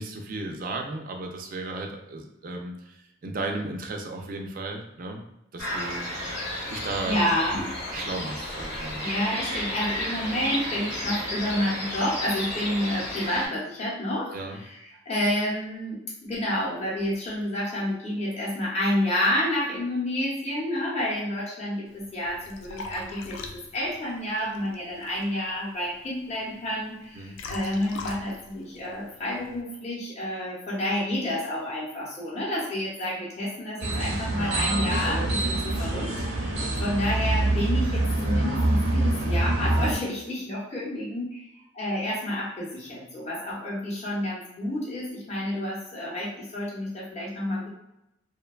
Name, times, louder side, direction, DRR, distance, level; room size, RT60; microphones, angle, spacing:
voice 1, 0.0-2.9 3.2-5.2 5.5-6.1 6.7-7.2 7.5-7.6 7.9-9.1 14.3-14.6 27.1-27.3, right 2 dB, 45° right, 3 dB, 0.3 m, -34 dB
sound 1, 5.6-13.5, left 1 dB, 65° left, 0.8 m, -33 dB
voice 2, 7.1-7.7 9.0-36.1 36.3-47.7, left 1 dB, 35° left, -6 dB, 0.7 m, -29 dB
Liquid, 21.9-29.6, left 3 dB, 90° left, 0.3 m, -43 dB
sound 2, 33.8-39.9, right 1 dB, 90° right, 0.6 m, -25 dB
2.7 x 2.1 x 2.3 m, 0.85 s
head